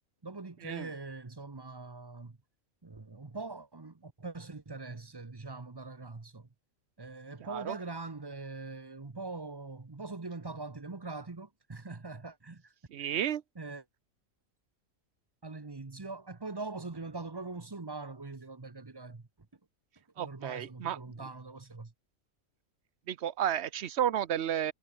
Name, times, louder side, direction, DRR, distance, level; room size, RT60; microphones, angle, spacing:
voice 1, 0.2-2.4 2.8-6.5 7.0-12.7 13.0-13.1 13.5-13.8 15.4-19.3 20.2-21.9, right 3 dB, 20° right, 0.9 m, -42 dB
voice 2, 12.9-13.4 20.2-21.0 23.1-24.7, right 10 dB, 60° right, 0.9 m, -32 dB
omnidirectional pair, 1.4 m